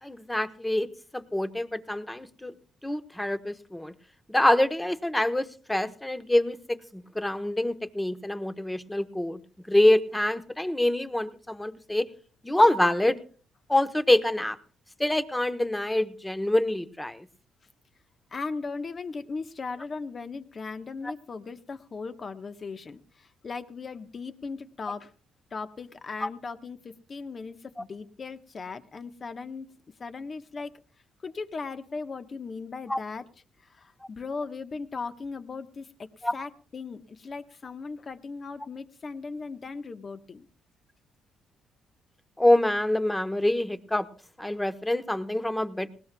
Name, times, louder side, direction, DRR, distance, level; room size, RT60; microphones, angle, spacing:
voice 1, 0.0-0.9 1.1-2.5 2.8-3.9 4.3-9.4 9.7-12.1 12.4-13.2 13.7-14.6 15.0-17.3 26.2-26.3 32.9-33.0 36.2-36.3 42.4-44.1 44.4-45.9, left 1 dB, 10° left, 10 dB, 1.0 m, -25 dB
voice 2, 18.3-25.1 25.5-29.7 30.0-30.7 31.2-33.2 33.6-40.5, left 4 dB, 40° left, 9 dB, 1.1 m, -38 dB
19.5 x 19.0 x 2.3 m, 0.39 s
cardioid pair, 90°, 0 cm